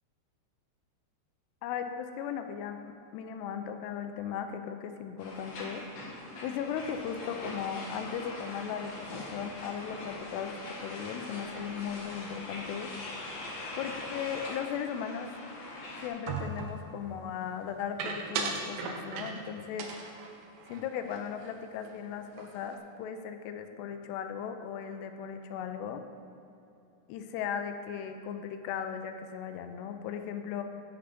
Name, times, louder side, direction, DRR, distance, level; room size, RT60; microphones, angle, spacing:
voice 1, 1.6-10.6 10.8-13.0 13.8-15.3 16.0-19.9 20.7-26.0 27.1-30.6, left 8 dB, 85° left, 7 dB, 2.7 m, -37 dB
sound 1, 5.2-16.1, left 2 dB, 50° left, 2.0 m, -42 dB
sound 2, 16.3-16.8 18.0-19.5 19.8-21.5 21.8-22.0 22.3-22.8, right 4 dB, 90° right, 3.1 m, -37 dB
9.9 x 6.9 x 6.7 m, 2.8 s
omnidirectional pair, 4.9 m